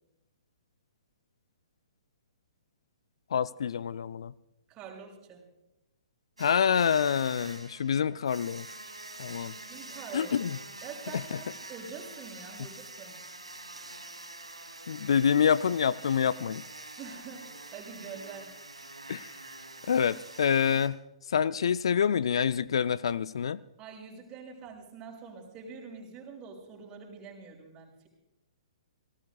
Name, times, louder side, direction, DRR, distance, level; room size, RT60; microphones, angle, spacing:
voice 1, 3.3-4.3 6.4-8.6 9.2-9.5 10.1-10.6 11.1-11.4 14.9-16.6 19.1-19.3 19.9-21.0 21.3-23.6, left 7 dB, 60° left, 17 dB, 0.4 m, -27 dB
voice 2, 4.7-5.4 9.4-10.3 10.8-13.2 17.0-18.5 23.8-28.1, right 6 dB, 25° right, -1 dB, 6.3 m, -45 dB
sound 1, 6.4-20.9, right 2 dB, 85° right, 3.0 m, -46 dB
28.5 x 19.0 x 2.4 m, 0.95 s
figure-of-eight pair, 120°, 3 cm